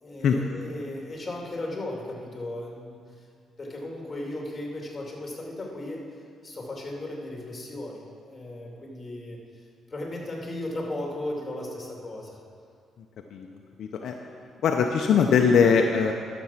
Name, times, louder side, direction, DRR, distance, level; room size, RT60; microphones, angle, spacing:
voice 1, 0.0-3.0 3.6-6.1 6.4-9.4 9.9-12.4, left 1 dB, 25° left, -1 dB, 2.6 m, -36 dB
voice 2, 13.8-14.1 14.6-16.1, left 6 dB, 70° left, 3 dB, 0.7 m, -21 dB
12.0 x 7.1 x 5.8 m, 2.2 s
cardioid pair, 90°, 0 cm